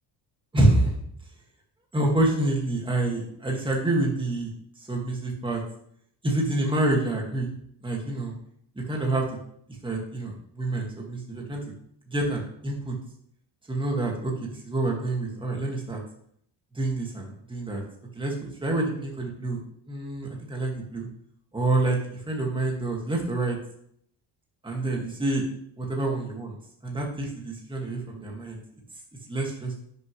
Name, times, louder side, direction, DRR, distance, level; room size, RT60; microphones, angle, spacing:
voice 1, 0.5-1.0 1.9-4.5 4.8-5.6 6.2-7.5 7.8-8.3 8.8-9.3 9.8-11.6 12.1-13.0 13.7-16.0 16.7-17.8 18.2-19.6 19.9-21.1 21.5-23.6 24.6-25.4 25.8-26.6 26.8-28.6 29.3-29.7, right 2 dB, 10° right, -1 dB, 2.0 m, -27 dB
10.5 x 6.7 x 3.2 m, 0.67 s
cardioid pair, 130°, 45 cm